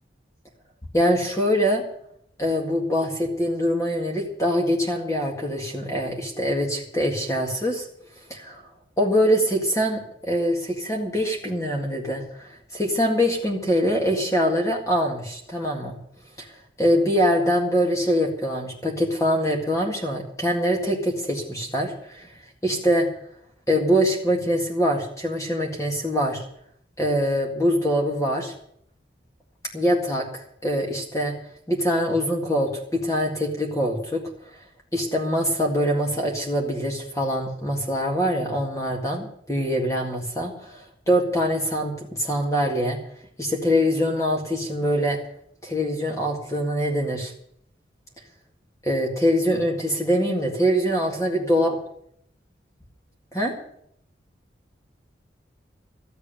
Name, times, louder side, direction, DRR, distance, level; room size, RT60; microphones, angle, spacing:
voice 1, 0.9-1.8 2.4-7.9 8.3-8.6 9.0-16.0 16.8-22.3 22.6-23.1 23.7-26.4 27.0-28.5 29.7-31.3 31.7-34.2 34.9-43.0 43.4-45.2 45.6-47.3 48.8-51.8 53.3-53.5, equal, 15° left, 0 dB, 2.0 m, -24 dB
14.0 x 8.1 x 8.9 m, 0.69 s
head